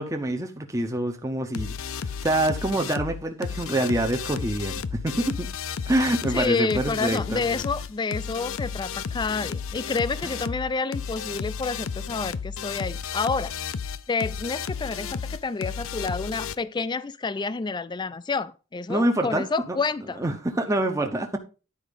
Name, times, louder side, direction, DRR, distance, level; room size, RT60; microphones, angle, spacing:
voice 1, 0.0-5.5 5.9-7.4 10.2-10.3 18.9-19.8 20.2-21.4, right 1 dB, 15° right, 0.7 m, -26 dB
sound 1, 1.5-16.6, left 6 dB, 70° left, 0.6 m, -33 dB
voice 2, 6.3-13.5 13.8-20.2, left 4 dB, 20° left, 0.3 m, -29 dB
10.0 x 4.8 x 5.2 m
head